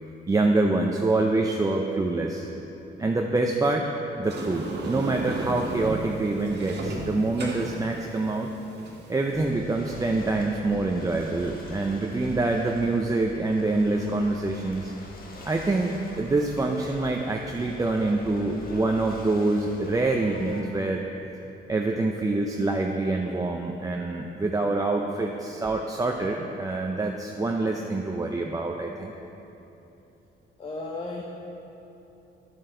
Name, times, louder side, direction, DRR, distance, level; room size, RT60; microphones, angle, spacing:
voice 1, 0.3-2.5 3.0-3.9 4.2-8.5 9.1-14.9 15.5-21.0 21.7-29.1, right 2 dB, 15° right, 1 dB, 0.5 m, -26 dB
Sliding door, 4.2-9.4, right 1 dB, 55° right, 1.6 m, -34 dB
Ocean / Boat Water vehicle, 9.3-20.6, left 2 dB, 45° left, 1.2 m, -44 dB
voice 2, 30.6-31.2, left 2 dB, 30° left, -1 dB, 0.9 m, -34 dB
10.0 x 7.5 x 3.8 m, 3.0 s
cardioid pair, 90°, 20 cm